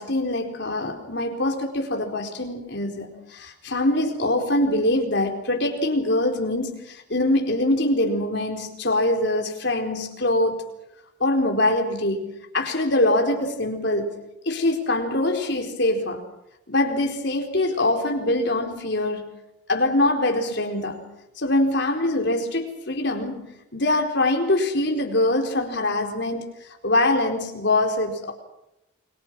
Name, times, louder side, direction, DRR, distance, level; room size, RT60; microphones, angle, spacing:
voice 1, 0.0-10.6 11.2-12.3 12.5-14.2 14.4-16.2 16.7-19.3 19.7-21.0 21.4-28.3, left 1 dB, 60° left, 4.5 m, -23 dB
29.0 x 23.0 x 6.2 m
head